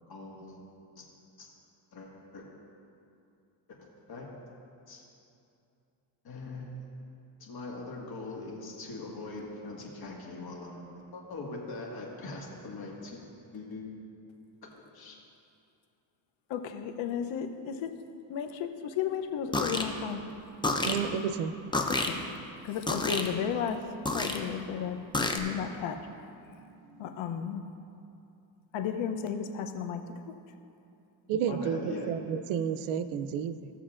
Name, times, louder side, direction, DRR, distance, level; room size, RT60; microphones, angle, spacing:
voice 1, 0.1-0.6 1.0-1.1 1.4-1.5 1.9-2.5 3.7-4.4 4.9-5.0 6.2-13.2 13.5-14.0 14.8-15.2 31.5-32.1, left 2 dB, 50° left, -1 dB, 1.8 m, -42 dB
voice 2, 16.5-18.0 18.3-20.2 22.0-22.2 22.6-23.8 24.1-26.0 27.0-27.6 28.7-30.3, left 8 dB, 70° left, 6 dB, 0.9 m, -34 dB
sound 1, 19.5-19.8 20.6-21.0 21.7-22.1 22.9-23.3 24.1-24.4 25.1-25.4, left 2 dB, 10° left, 0.6 m, -28 dB
voice 3, 20.8-21.6 26.1-27.1 31.3-33.7, right 7 dB, 85° right, 11 dB, 0.6 m, -32 dB
16.5 x 6.8 x 2.5 m, 2.6 s
cardioid pair, 105°, 47 cm